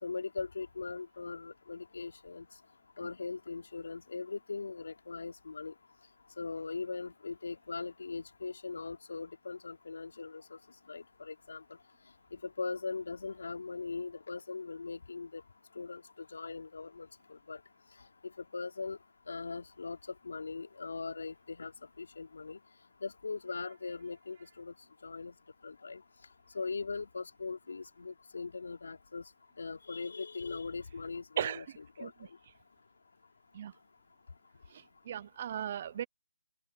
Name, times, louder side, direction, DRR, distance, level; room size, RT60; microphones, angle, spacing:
voice 1, 0.0-2.5 3.0-5.7 6.4-10.6 10.9-11.6 12.3-15.4 15.7-17.6 18.4-19.0 19.3-20.0 20.2-21.7 22.0-22.6 23.0-24.7 25.0-25.3 25.6-26.0 26.5-29.2 29.6-32.3, left 4 dB, 65° left, 3.4 m, -40 dB
voice 2, 35.1-36.0, right 10 dB, 30° right, 0.6 m, -36 dB
open air
figure-of-eight pair, 165°, 0 cm